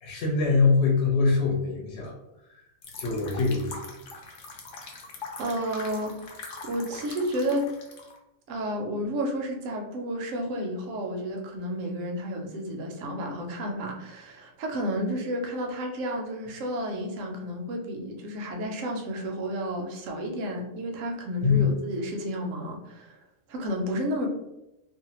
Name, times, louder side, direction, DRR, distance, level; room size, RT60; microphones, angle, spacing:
voice 1, 0.0-2.1 3.0-3.8 21.4-21.6, left 4 dB, 60° left, -2 dB, 0.9 m, -23 dB
sound 1, 2.8-8.2, left 3 dB, 80° left, 0.4 m, -42 dB
voice 2, 5.4-7.7 8.5-23.2 23.5-24.3, equal, 70° right, 1 dB, 0.9 m, -31 dB
2.6 x 2.1 x 2.8 m, 0.92 s
omnidirectional pair, 1.4 m